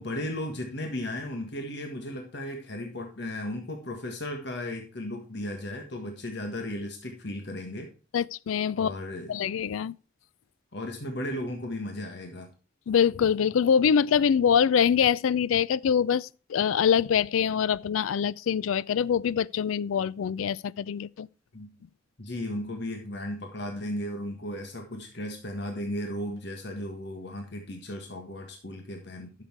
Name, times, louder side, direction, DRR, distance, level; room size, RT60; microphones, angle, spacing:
voice 1, 0.0-7.9 8.7-9.5 10.7-12.5 21.5-21.7 22.2-29.3, left 1 dB, 55° left, 1.6 m, -35 dB
voice 2, 8.1-8.9 9.3-9.9 12.9-21.3, left 7 dB, 80° left, 0.4 m, -24 dB
11.0 x 6.7 x 4.5 m
head